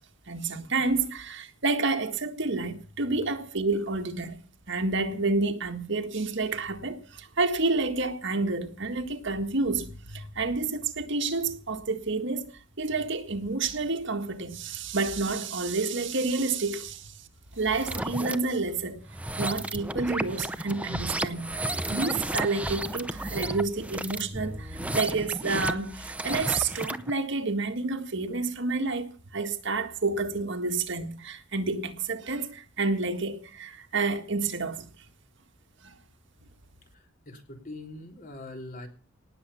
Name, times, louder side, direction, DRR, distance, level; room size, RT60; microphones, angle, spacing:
voice 1, 0.3-4.4 4.7-12.5 12.8-17.1 17.5-19.0 19.4-34.8 35.8-36.0, right 3 dB, 60° right, 1.8 m, -29 dB
sound 1, 17.6-18.4 19.0-27.1, right 1 dB, 5° right, 0.8 m, -33 dB
voice 2, 36.9-38.9, left 2 dB, 45° left, 3.5 m, -43 dB
19.0 x 7.2 x 7.0 m
head